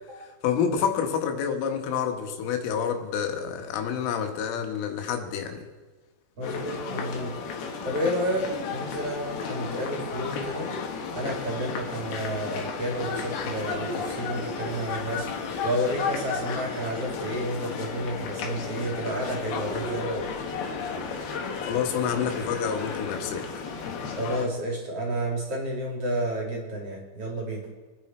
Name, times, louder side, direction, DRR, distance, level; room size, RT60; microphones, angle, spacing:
voice 1, 0.2-5.6 21.6-23.6, left 7 dB, 80° left, 4 dB, 4.0 m, -28 dB
sound 1, 6.4-24.5, left 5 dB, 65° left, 2.9 m, -33 dB
voice 2, 6.4-7.3 7.8-8.5 8.7-10.7 11.1-15.3 15.6-20.2 24.2-27.7, right 1 dB, 35° right, -1 dB, 2.9 m, -31 dB
28.0 x 10.0 x 4.4 m, 1.3 s
omnidirectional pair, 5.8 m